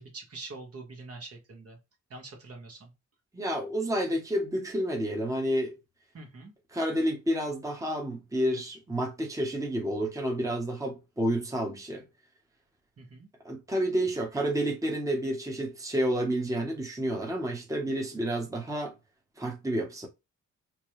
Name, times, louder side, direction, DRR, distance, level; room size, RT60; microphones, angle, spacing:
voice 1, 0.0-1.8 2.1-2.9 6.1-6.5 13.0-13.3, right 3 dB, 50° right, 1.4 m, -44 dB
voice 2, 3.3-5.8 6.7-12.0 13.4-18.9 19.4-20.1, right 1 dB, 10° right, 1.0 m, -30 dB
4.4 x 2.2 x 3.2 m
cardioid pair, 75°, 30 cm